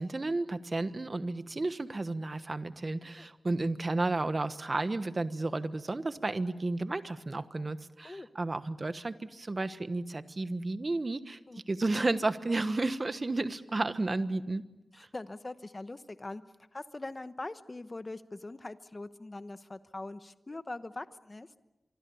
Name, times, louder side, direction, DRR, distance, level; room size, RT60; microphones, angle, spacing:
voice 1, 0.0-11.4 11.7-14.6, right 2 dB, 35° right, 11 dB, 1.2 m, -32 dB
voice 2, 14.9-16.4 16.7-21.5, left 2 dB, 30° left, 12 dB, 1.0 m, -42 dB
25.5 x 25.0 x 7.1 m, 1.0 s
wide cardioid pair, 115°, 0 cm